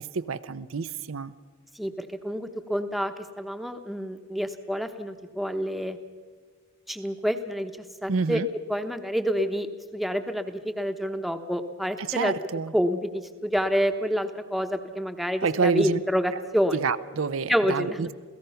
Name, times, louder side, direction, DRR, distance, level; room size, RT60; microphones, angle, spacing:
voice 1, 0.0-1.3 8.1-8.5 12.0-12.7 15.4-16.0 16.3-16.4 16.7-18.1, right 5 dB, 80° right, 13 dB, 0.6 m, -28 dB
voice 2, 1.7-6.0 6.9-8.4 8.7-12.4 12.7-16.8 17.5-18.1, equal, ahead, 7 dB, 1.0 m, -28 dB
28.0 x 17.0 x 5.7 m, 1.5 s
head